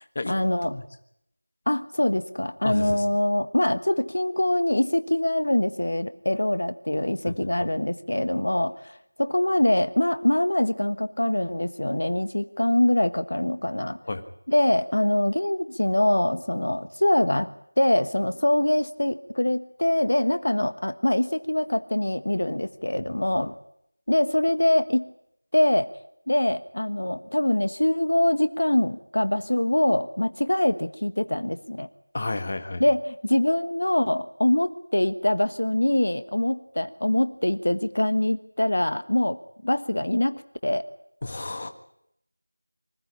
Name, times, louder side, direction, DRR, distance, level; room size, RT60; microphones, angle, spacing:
voice 1, 0.3-0.7 1.7-14.0 14.5-23.5 24.1-25.0 25.5-25.9 26.3-31.9 32.8-40.8, left 1 dB, 60° left, 12 dB, 1.3 m, -24 dB
voice 2, 2.6-3.0 14.1-14.2 23.0-23.1 32.1-32.8 41.2-41.7, left 2 dB, 25° left, 7 dB, 1.5 m, -31 dB
25.0 x 15.0 x 10.0 m, 0.76 s
figure-of-eight pair, 175°, 0 cm